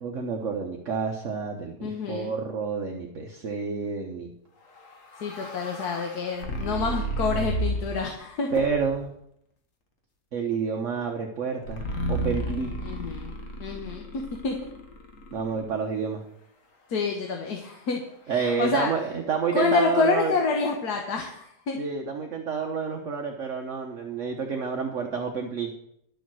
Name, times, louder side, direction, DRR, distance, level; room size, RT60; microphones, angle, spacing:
voice 1, 0.0-4.3 8.5-9.1 10.3-12.8 15.3-16.2 18.3-20.4 21.8-25.7, right 5 dB, 55° right, 2 dB, 1.2 m, -29 dB
voice 2, 1.8-2.3 5.2-8.5 12.8-14.6 16.9-18.0 18.3-18.9 19.5-21.8, left 5 dB, 75° left, 2 dB, 1.7 m, -28 dB
sound 1, 4.8-8.1 8.5-9.1 11.7-15.8, right 1 dB, 55° left, 1.8 m, -33 dB
11.5 x 7.0 x 6.2 m, 0.74 s
omnidirectional pair, 1.7 m